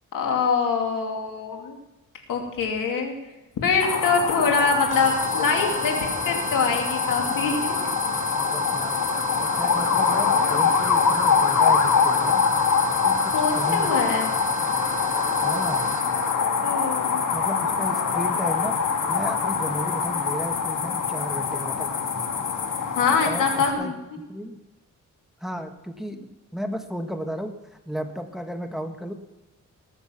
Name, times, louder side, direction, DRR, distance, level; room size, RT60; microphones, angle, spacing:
voice 1, 0.1-1.8 2.3-3.1 3.6-6.0 6.2-7.9 13.3-14.3 16.6-17.2 23.0-23.9, left 5 dB, 90° left, 2 dB, 2.6 m, -24 dB
sound 1, 3.8-23.7, left 5 dB, 75° left, 1.8 m, -24 dB
sound 2, 4.9-16.3, right 1 dB, 25° right, 3.1 m, -33 dB
voice 2, 8.5-9.0 9.4-12.4 13.0-14.0 15.4-15.9 17.3-18.8 19.1-22.3 23.2-24.6 25.4-27.5 27.8-29.1, equal, ahead, 5 dB, 1.4 m, -34 dB
20.0 x 7.0 x 5.8 m, 1.0 s
cardioid pair, 80°, 32 cm